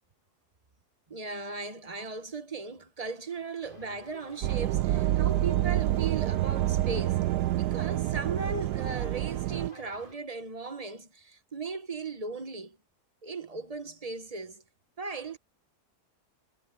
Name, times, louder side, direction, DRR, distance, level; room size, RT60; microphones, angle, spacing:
voice 1, 1.1-7.2 7.5-12.8 13.2-14.6 15.0-15.4, right 4 dB, 25° right, 1.1 m, -37 dB
sound 1, 3.6-10.2, left 1 dB, 30° left, 8.0 m, -51 dB
sound 2, 4.4-9.7, right 14 dB, 90° right, 1.2 m, -27 dB
omnidirectional pair, 1.7 m